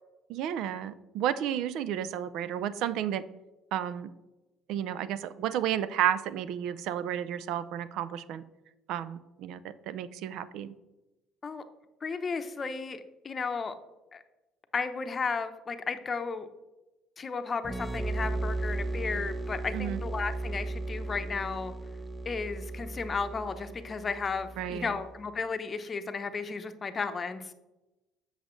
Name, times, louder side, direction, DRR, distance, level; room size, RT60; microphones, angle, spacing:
voice 1, 0.3-3.2 3.7-4.1 4.7-8.4 8.9-10.7 19.7-20.0 24.6-24.9, right 10 dB, 70° right, 15 dB, 0.4 m, -32 dB
voice 2, 12.0-13.7 14.1-14.2 14.7-16.5 17.2-21.7 22.3-27.5, left 4 dB, 35° left, 9 dB, 0.8 m, -34 dB
sound 1, 17.6-25.2, right 2 dB, 10° right, 0.6 m, -36 dB
8.1 x 6.5 x 3.2 m, 1.0 s
supercardioid pair, 80°, 0 cm